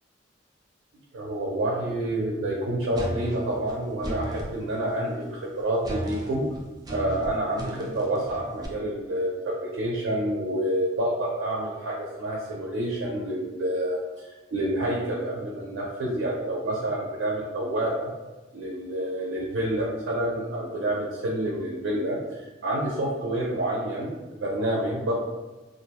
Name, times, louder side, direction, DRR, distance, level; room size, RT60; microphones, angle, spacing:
voice 1, 1.1-6.5 6.9-9.4 9.7-18.1 18.5-25.1, right 1 dB, 90° right, -3 dB, 0.5 m, -28 dB
sound 1, 3.0-4.5 5.8-8.7, right 1 dB, 20° right, 0.3 m, -35 dB
2.4 x 2.1 x 2.9 m, 1.2 s
head